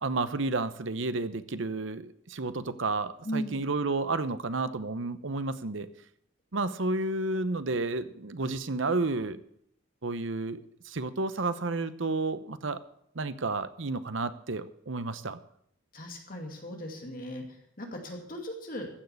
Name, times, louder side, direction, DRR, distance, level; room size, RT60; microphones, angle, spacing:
voice 1, 0.0-5.9 6.5-9.4 10.0-10.6 10.8-12.8 13.1-15.4, right 3 dB, 70° right, 13 dB, 0.9 m, -31 dB
voice 2, 3.2-3.6 15.9-18.9, equal, 40° left, 2 dB, 2.5 m, -37 dB
15.0 x 6.6 x 8.3 m, 0.71 s
head